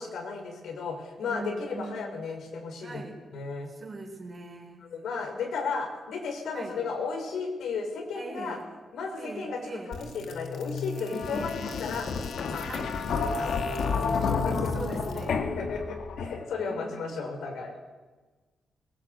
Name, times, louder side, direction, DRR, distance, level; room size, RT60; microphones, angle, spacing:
voice 1, 0.0-3.0 3.3-3.7 4.8-8.6 8.9-12.1 12.5-12.7 13.4-14.7 15.6-17.7, left 4 dB, 80° left, 3 dB, 5.7 m, -34 dB
voice 2, 1.2-2.1 2.8-3.2 3.7-4.8 6.5-6.8 8.1-8.7 9.2-9.9 11.0-11.5 12.7-12.9 14.7-15.5 16.6-17.3, right 3 dB, 30° right, 2 dB, 4.8 m, -41 dB
sound 1, 9.9-16.7, left 5 dB, 60° left, 2.1 m, -31 dB
22.0 x 20.0 x 8.5 m, 1.3 s
wide cardioid pair, 155°, 0 cm